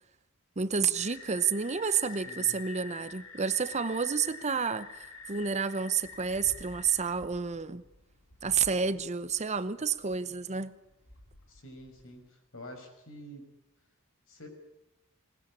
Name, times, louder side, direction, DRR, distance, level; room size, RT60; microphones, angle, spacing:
voice 1, 0.6-7.8 8.4-10.7, right 6 dB, 30° right, 0.8 m, -30 dB
sound 1, 0.9-12.3, left 4 dB, 90° left, 4.2 m, -47 dB
voice 2, 2.2-2.6 11.5-13.5 14.3-14.5, equal, 65° left, 5.8 m, -48 dB
21.0 x 19.0 x 8.7 m
head